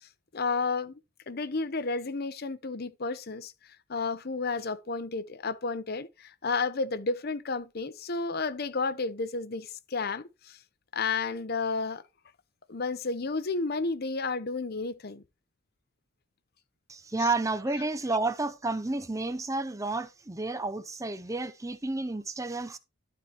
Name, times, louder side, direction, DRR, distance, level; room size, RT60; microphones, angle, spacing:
voice 1, 0.3-1.0 1.3-3.5 3.9-10.6 10.9-12.0 12.7-15.2, left 4 dB, 50° left, 0.7 m, -31 dB
voice 2, 16.9-22.8, right 2 dB, 15° right, 0.5 m, -31 dB
12.5 x 4.4 x 4.3 m
head